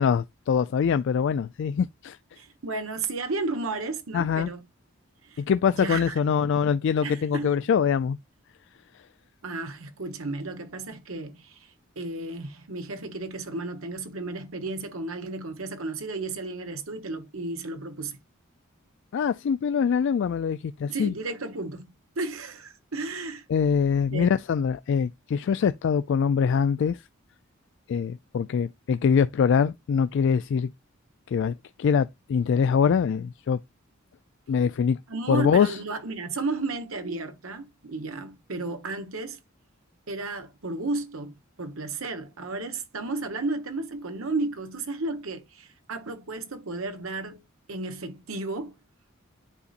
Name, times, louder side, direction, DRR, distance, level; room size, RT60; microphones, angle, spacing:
voice 1, 0.0-2.2 4.1-4.5 5.4-8.2 19.1-21.1 23.5-27.0 27.9-30.7 31.3-33.6 34.5-35.0 35.3-35.8, left 6 dB, 60° left, 0.3 m, -24 dB
voice 2, 2.4-4.6 5.2-5.4 5.7-6.2 7.0-7.6 9.4-11.7 12.0-18.2 20.8-21.9 22.2-23.4 24.1-24.3 35.1-39.4 40.1-47.4 47.7-48.7, right 3 dB, 85° right, 1.1 m, -33 dB
9.8 x 4.0 x 2.5 m
head